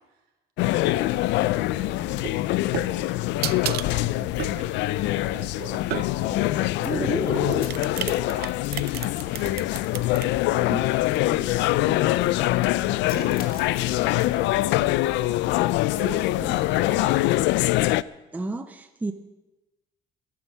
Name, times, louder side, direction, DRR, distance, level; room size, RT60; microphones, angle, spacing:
sound 1, 0.6-18.0, left 17 dB, 90° left, 0.4 m, -24 dB
voice 1, 0.7-15.4 15.9-17.3, right 5 dB, 80° right, 2 dB, 3.4 m, -43 dB
sound 2, 2.1-6.5 7.2-10.3, right 16 dB, 60° right, 0.4 m, -34 dB
sound 3, 6.8-7.9 8.6-10.6 11.2-11.3 11.7-11.9 12.3-14.1, left 4 dB, 55° left, 1.7 m, -33 dB
voice 2, 6.8-7.2 10.7-10.9 16.4-16.6 18.3-19.1, right 2 dB, 10° right, 7 dB, 0.6 m, -31 dB
13.0 x 11.0 x 7.2 m, 1.0 s
cardioid pair, 170°, 18 cm